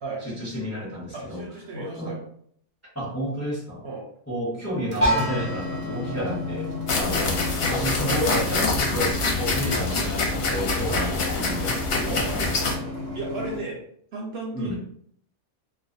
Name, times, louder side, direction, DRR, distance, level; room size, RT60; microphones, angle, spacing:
voice 1, 0.2-1.4 1.7-2.2 2.9-3.8 4.3-6.7 6.9-7.4 7.7-12.9 14.5-14.8, equal, 15° left, -6 dB, 0.7 m, -31 dB
voice 2, 1.1-2.2 3.8-4.1 6.9-7.1 10.9-11.0 12.0-12.4 13.1-13.8 14.1-14.8, right 3 dB, 65° right, -1 dB, 0.8 m, -34 dB
sound 1, 4.7-13.6, left 2 dB, 85° right, 1.0 m, -34 dB
sound 2, 5.0-10.8, left 1 dB, 20° right, 0.4 m, -31 dB
sound 3, 6.9-12.7, left 3 dB, 60° left, 0.7 m, -25 dB
2.4 x 2.1 x 2.6 m, 0.64 s
omnidirectional pair, 1.3 m